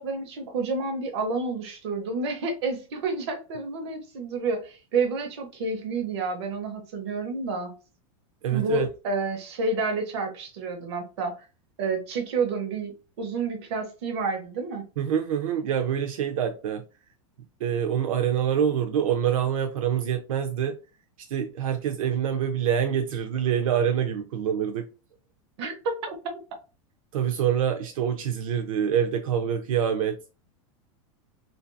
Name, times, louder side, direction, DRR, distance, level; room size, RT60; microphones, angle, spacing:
voice 1, 0.0-7.7 8.5-11.4 11.8-14.8 25.6-26.1, right 3 dB, 55° right, 0.8 m, -29 dB
voice 2, 8.4-8.9 15.0-16.8 17.6-20.7 21.3-24.9 27.1-30.1, right 8 dB, 85° right, 0.5 m, -26 dB
2.6 x 2.5 x 2.2 m
supercardioid pair, 180°, 17 cm